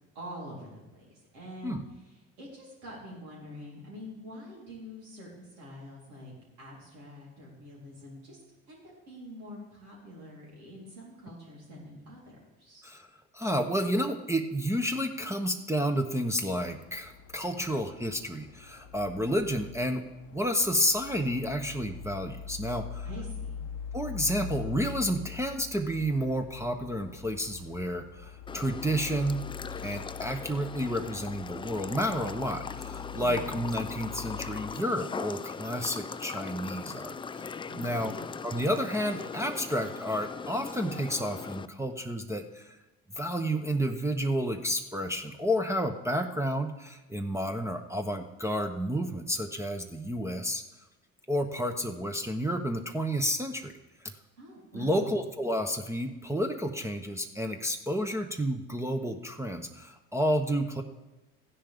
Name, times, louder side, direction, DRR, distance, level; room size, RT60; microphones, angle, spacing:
voice 1, 0.1-1.0 1.3-1.8 2.0-8.4 8.7-12.2 12.6-12.9 23.0-23.6 33.1-33.5 37.7-38.3 54.4-55.2, equal, 80° right, -5 dB, 4.0 m, -45 dB
voice 2, 13.3-23.1 23.9-29.4 29.8-37.5 37.8-38.1 38.4-42.7 43.1-50.6 51.3-53.7 54.7-60.8, equal, 5° right, 2 dB, 0.9 m, -30 dB
sound 1, 16.5-34.7, left 7 dB, 70° left, 0.8 m, -43 dB
sound 2, 28.5-41.7, left 5 dB, 15° left, 0.3 m, -40 dB
15.0 x 10.0 x 3.6 m, 1.1 s
hypercardioid pair, 50°, 43 cm